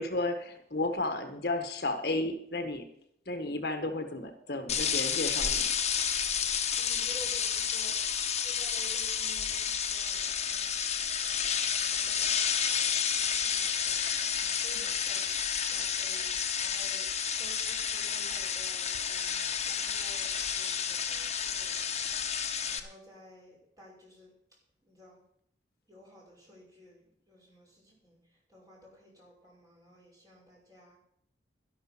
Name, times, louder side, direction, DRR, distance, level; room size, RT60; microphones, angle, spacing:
voice 1, 0.0-2.9 3.3-5.7, left 2 dB, 55° left, 7 dB, 1.4 m, -33 dB
sound 1, 4.7-22.8, left 7 dB, 35° left, 1.1 m, -31 dB
voice 2, 6.7-8.0 8.3-10.7 11.2-16.3 16.6-17.1 17.4-24.3 24.8-25.2 25.9-31.0, equal, 20° right, -4 dB, 5.8 m, -54 dB
12.0 x 12.0 x 6.0 m, 0.70 s
head